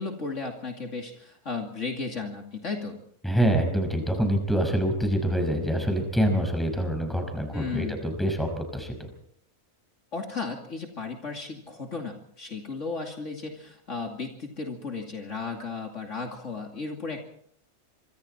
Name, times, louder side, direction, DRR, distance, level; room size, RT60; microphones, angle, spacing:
voice 1, 0.0-3.0 7.5-8.0 10.1-17.2, left 4 dB, 60° left, 2 dB, 2.9 m, -35 dB
voice 2, 3.2-9.1, equal, ahead, 5 dB, 5.4 m, -26 dB
26.0 x 24.5 x 4.4 m, 0.64 s
omnidirectional pair, 1.4 m